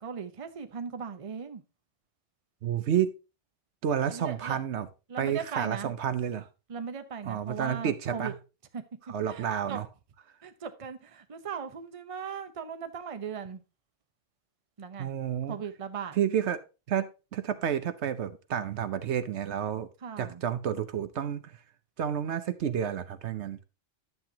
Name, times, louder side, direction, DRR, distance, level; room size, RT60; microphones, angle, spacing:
voice 1, 0.0-1.6 4.1-4.6 5.1-5.9 6.7-8.3 8.7-8.8 9.3-9.8 10.4-13.6 14.8-15.1 15.5-16.2 20.0-20.4, right 6 dB, 30° right, 0.8 m, -38 dB
voice 2, 2.6-3.1 3.8-4.9 5.2-6.5 7.3-8.3 9.1-9.9 15.0-15.6 16.2-19.9 20.2-21.5 22.0-23.6, right 9 dB, 70° right, 0.9 m, -30 dB
11.0 x 7.7 x 2.8 m
omnidirectional pair, 1.2 m